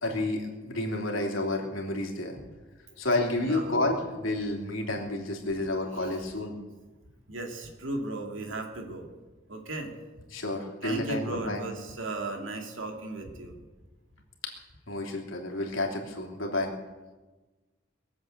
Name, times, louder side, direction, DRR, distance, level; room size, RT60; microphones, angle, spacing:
voice 1, 0.0-2.4 3.0-6.5 10.3-11.6 14.9-16.7, left 2 dB, 90° left, 1 dB, 3.2 m, -30 dB
voice 2, 3.4-3.8 5.9-6.3 7.3-9.1 9.5-9.9 10.8-13.6, right 2 dB, 75° right, 3 dB, 2.7 m, -36 dB
22.0 x 8.0 x 8.1 m, 1.2 s
head